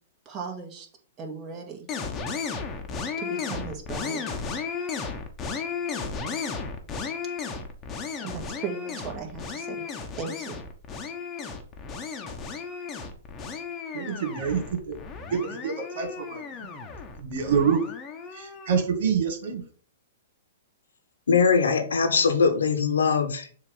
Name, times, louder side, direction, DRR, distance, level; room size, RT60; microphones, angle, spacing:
voice 1, 0.3-0.9 1.2-1.9 3.2-4.2 8.2-9.8 10.2-10.6, right 5 dB, 30° right, 1 dB, 2.0 m, -37 dB
sound 1, 1.9-18.8, left 5 dB, 25° left, 1.1 m, -34 dB
voice 2, 13.9-15.0 15.3-16.4 17.2-17.8 18.3-19.6, right 6 dB, 65° right, 4 dB, 2.2 m, -26 dB
voice 3, 21.3-23.5, left 5 dB, 85° left, 7 dB, 1.4 m, -21 dB
7.2 x 3.0 x 5.5 m, 0.43 s
hypercardioid pair, 125°, 0 cm